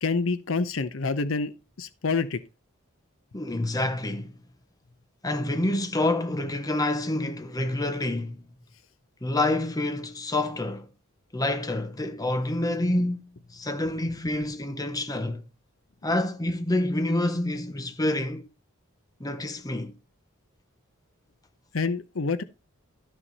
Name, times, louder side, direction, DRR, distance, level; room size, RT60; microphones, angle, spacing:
voice 1, 0.0-2.4 21.7-22.4, left 4 dB, 65° left, 0.7 m, -27 dB
voice 2, 3.3-4.3 5.2-8.4 9.2-10.9 11.3-15.4 16.0-18.5 19.2-19.9, left 1 dB, 20° left, 0.9 m, -27 dB
12.5 x 5.9 x 4.1 m
head